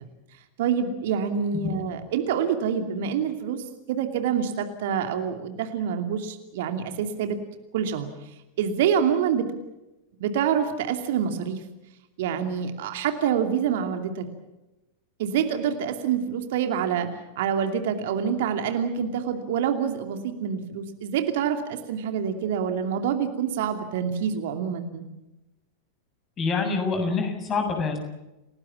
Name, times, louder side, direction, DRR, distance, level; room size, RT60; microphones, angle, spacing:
voice 1, 0.6-7.4 7.7-8.1 8.6-9.5 10.2-11.6 12.2-14.2 15.2-17.1 17.4-25.1, right 8 dB, 55° right, 6 dB, 2.7 m, -26 dB
voice 2, 26.4-28.0, left 4 dB, 25° left, 6 dB, 7.1 m, -26 dB
29.0 x 19.5 x 7.4 m, 0.97 s
figure-of-eight pair, 90°, 0 cm